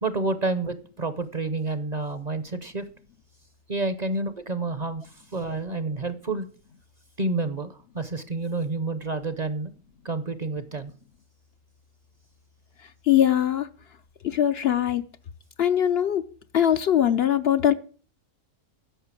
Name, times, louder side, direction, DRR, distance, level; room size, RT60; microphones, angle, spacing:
voice 1, 0.0-2.8 3.7-6.5 7.2-9.7 10.0-10.9, right 3 dB, 40° right, 0.8 m, -29 dB
voice 2, 13.1-13.7 14.2-15.0 15.6-16.3 16.5-17.7, left 10 dB, 60° left, 0.8 m, -21 dB
10.0 x 6.6 x 8.2 m
omnidirectional pair, 1.3 m